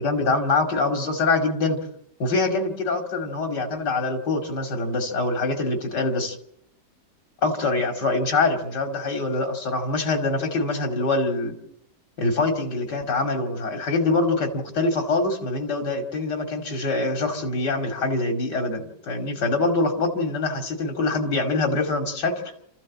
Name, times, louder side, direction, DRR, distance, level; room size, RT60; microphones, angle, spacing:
voice 1, 0.0-1.8 2.2-6.4 7.4-11.5 12.2-22.3, left 3 dB, 75° left, 5 dB, 3.1 m, -24 dB
27.5 x 14.5 x 7.4 m, 0.73 s
omnidirectional pair, 1.8 m